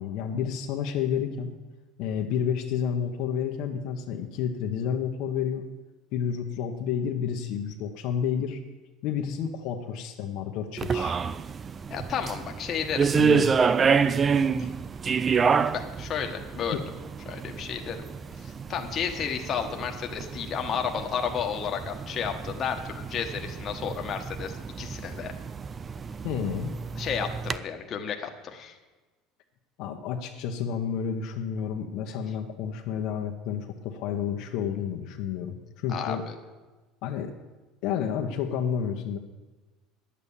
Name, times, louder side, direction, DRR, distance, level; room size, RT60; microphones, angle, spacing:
voice 1, 0.0-1.5 2.0-5.6 6.1-8.6 9.0-11.1 13.1-13.5 16.7-16.8 26.2-26.7 29.8-36.2 37.0-37.3 37.8-39.2, left 8 dB, 65° left, 3 dB, 1.1 m, -30 dB
sound 1, 10.8-27.6, right 6 dB, 25° right, 0.4 m, -28 dB
voice 2, 11.9-13.1 14.6-14.7 15.7-16.8 17.3-18.0 18.4-25.3 27.0-28.7 35.9-36.3, left 7 dB, 40° left, 4 dB, 1.3 m, -32 dB
10.5 x 8.5 x 7.2 m, 1.2 s
supercardioid pair, 125°, 0 cm